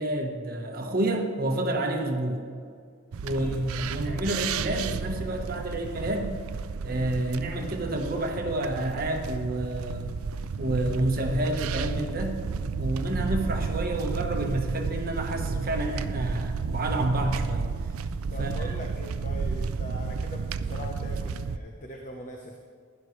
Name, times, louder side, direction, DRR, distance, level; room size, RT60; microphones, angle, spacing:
voice 1, 0.0-2.4 3.2-6.4 6.8-10.1 10.6-12.4 12.8-17.7 18.4-18.7, right 1 dB, 45° right, 2 dB, 1.2 m, -29 dB
sound 1, 3.1-21.6, right 5 dB, 80° right, 0.4 m, -32 dB
voice 2, 3.3-3.7 18.3-22.6, equal, 35° left, 1 dB, 0.9 m, -41 dB
16.0 x 11.0 x 3.2 m, 2.3 s
head